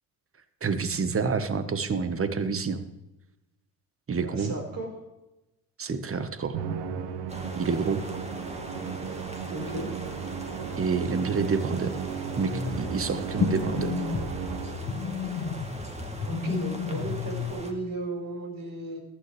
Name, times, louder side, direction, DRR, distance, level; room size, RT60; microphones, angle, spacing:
voice 1, 0.6-2.9 4.1-4.5 5.8-6.6 7.6-8.0 10.8-11.9 12.4-12.5 12.8-13.9, right 5 dB, 30° right, 10 dB, 1.4 m, -28 dB
voice 2, 4.2-4.9 9.5-9.9 16.2-19.0, right 2 dB, 50° right, 0 dB, 5.1 m, -35 dB
Musical instrument, 6.5-15.1, right 7 dB, 65° right, 1.2 m, -35 dB
sound 1, 7.3-17.7, right 1 dB, 15° right, 2.2 m, -41 dB
sound 2, 12.5-17.5, left 6 dB, 45° left, 1.8 m, -32 dB
15.0 x 12.0 x 3.4 m, 0.98 s
hypercardioid pair, 60°, 45 cm